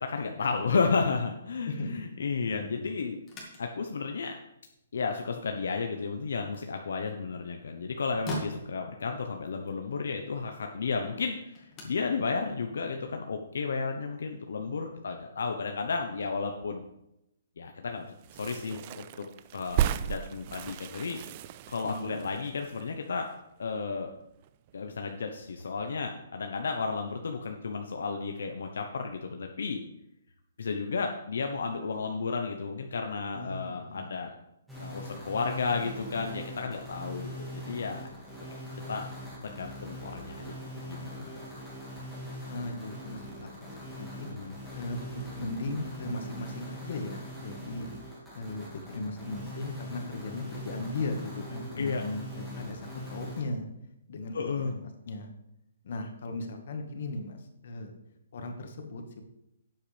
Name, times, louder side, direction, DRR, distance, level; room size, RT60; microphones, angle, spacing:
voice 1, 0.0-3.2 3.6-4.4 4.9-16.8 17.6-19.3 19.5-21.2 21.7-23.3 23.6-24.1 24.7-29.8 30.6-34.3 34.8-38.1 38.9-39.1 39.4-40.6 40.8-41.3 44.3-44.5 51.8-52.0 54.3-54.7, left 4 dB, 75° left, 4 dB, 0.9 m, -33 dB
voice 2, 2.5-2.9 21.8-22.2 33.3-34.1 42.5-44.3 44.7-47.9 48.3-53.7 54.1-55.3 55.8-57.9 58.3-59.2, left 2 dB, 50° left, 5 dB, 1.6 m, -37 dB
sound 1, 3.2-13.7, equal, 15° left, 1.9 m, -47 dB
sound 2, 18.2-23.8 24.1-24.2 24.4-25.3 25.6-25.8, right 11 dB, 25° right, 0.3 m, -35 dB
sound 3, 34.7-53.4, equal, ahead, 2.2 m, -42 dB
11.5 x 8.4 x 3.4 m, 0.84 s
hypercardioid pair, 170°, 0 cm